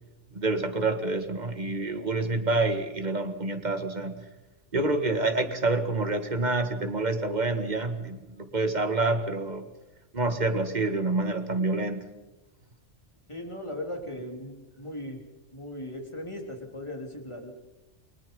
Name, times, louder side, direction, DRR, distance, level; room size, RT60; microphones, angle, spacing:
voice 1, 0.3-4.1 4.7-9.7 10.1-12.0, right 2 dB, 35° right, 7 dB, 1.9 m, -27 dB
voice 2, 13.3-15.2 15.5-17.5, left 1 dB, 25° left, 2 dB, 3.5 m, -38 dB
30.0 x 19.5 x 5.4 m, 1.0 s
omnidirectional pair, 1.2 m